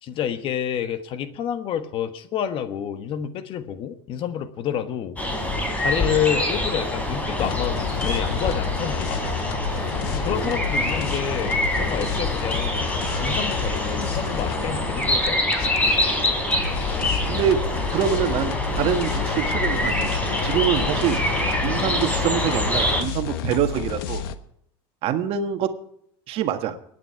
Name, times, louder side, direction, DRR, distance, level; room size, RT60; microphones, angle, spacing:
voice 1, 0.0-5.2 5.8-9.3 10.1-12.8 13.2-15.5, left 9 dB, 45° left, 11 dB, 1.3 m, -28 dB
sound 1, 5.2-23.0, left 1 dB, 10° left, 3.5 m, -25 dB
sound 2, 7.4-24.4, left 8 dB, 90° left, 1.1 m, -31 dB
voice 2, 17.3-20.1 20.4-21.2 21.6-24.2 25.0-25.7 26.3-26.8, right 9 dB, 50° right, 8 dB, 1.6 m, -25 dB
24.0 x 9.4 x 4.6 m, 0.72 s
supercardioid pair, 130°, 12 cm